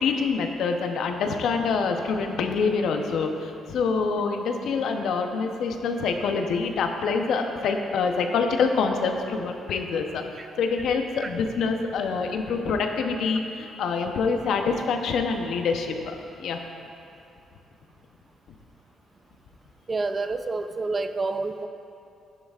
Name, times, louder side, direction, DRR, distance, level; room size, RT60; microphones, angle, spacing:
voice 1, 0.0-10.2 10.6-16.1 16.4-16.6, left 5 dB, 75° left, 4 dB, 0.8 m, -26 dB
voice 2, 19.9-21.7, right 3 dB, 30° right, 9 dB, 0.4 m, -28 dB
11.0 x 10.5 x 2.4 m, 2.7 s
cardioid pair, 90°, 0 cm